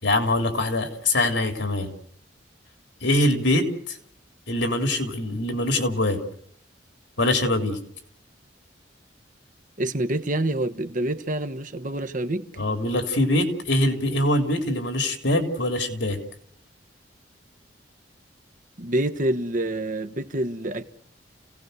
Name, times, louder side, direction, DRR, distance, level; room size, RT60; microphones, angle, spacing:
voice 1, 0.0-1.9 3.0-3.7 4.5-6.2 7.2-7.8 12.6-16.2, left 1 dB, 80° left, 3.4 m, -23 dB
voice 2, 9.8-12.4 18.8-20.8, right 1 dB, 45° right, 1.2 m, -27 dB
29.0 x 17.5 x 6.7 m
head